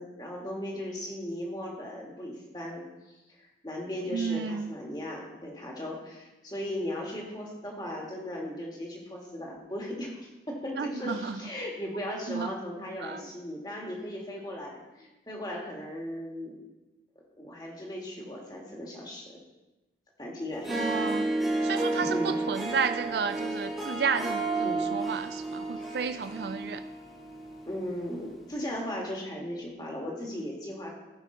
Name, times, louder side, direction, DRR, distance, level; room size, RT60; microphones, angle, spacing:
voice 1, 0.0-16.6 17.4-19.4 20.2-21.2 22.0-22.4 24.6-24.9 25.7-26.1 27.7-30.9, left 1 dB, 25° left, -1 dB, 1.7 m, -37 dB
voice 2, 4.1-4.7 10.8-11.4 12.3-12.5 13.0-13.3 20.7-21.3 21.6-26.8, right 6 dB, 70° right, 10 dB, 0.4 m, -32 dB
Harp, 20.5-27.9, right 2 dB, ahead, 1.3 m, -32 dB
15.0 x 5.4 x 3.8 m, 1.1 s
head